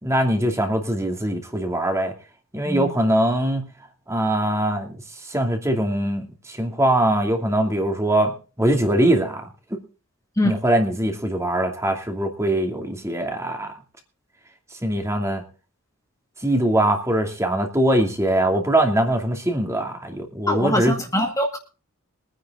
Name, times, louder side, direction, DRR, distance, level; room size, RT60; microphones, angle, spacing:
voice 1, 0.0-2.1 2.5-3.6 4.1-9.4 10.4-13.7 14.8-15.4 16.4-21.0, right 1 dB, 15° right, 4 dB, 2.5 m, -22 dB
voice 2, 20.5-21.6, left 1 dB, 15° left, 3 dB, 1.9 m, -23 dB
23.0 x 10.0 x 3.7 m, 0.35 s
head